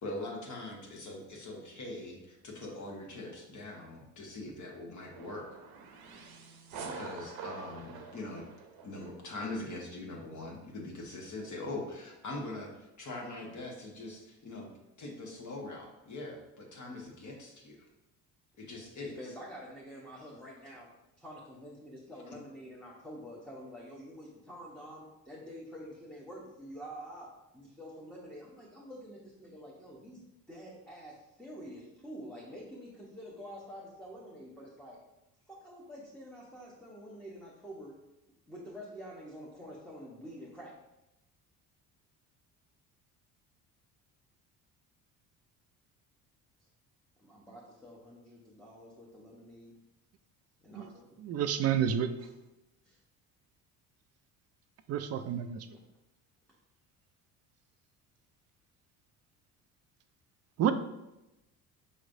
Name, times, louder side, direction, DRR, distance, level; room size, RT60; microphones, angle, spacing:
voice 1, 0.0-5.5 6.8-8.4 8.8-14.7 15.0-17.8 18.6-19.2, left 2 dB, 40° left, 0 dB, 1.1 m, -42 dB
sound 1, 5.1-9.2, right 4 dB, 60° right, 0.8 m, -46 dB
voice 2, 19.0-20.9 21.2-30.2 30.5-35.0 35.5-38.0 38.5-40.7 47.2-49.8 50.6-51.1 52.8-53.0, equal, ahead, -5 dB, 0.9 m, -47 dB
voice 3, 51.2-52.1 54.9-55.8 60.6-60.7, right 9 dB, 40° right, 10 dB, 0.4 m, -29 dB
5.2 x 3.1 x 2.6 m, 0.93 s
hypercardioid pair, 65°, 44 cm